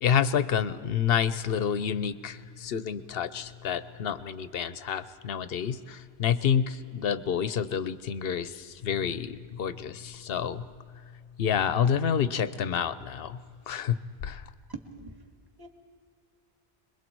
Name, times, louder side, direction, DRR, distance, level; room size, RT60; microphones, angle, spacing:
voice 1, 0.0-10.6 11.4-13.4 13.7-13.9 14.2-14.4, left 8 dB, 70° left, 14 dB, 0.9 m, -28 dB
voice 2, 14.7-15.2 15.6-15.7, right 4 dB, 20° right, 3 dB, 2.1 m, -42 dB
26.5 x 21.5 x 4.6 m, 2.1 s
omnidirectional pair, 1.1 m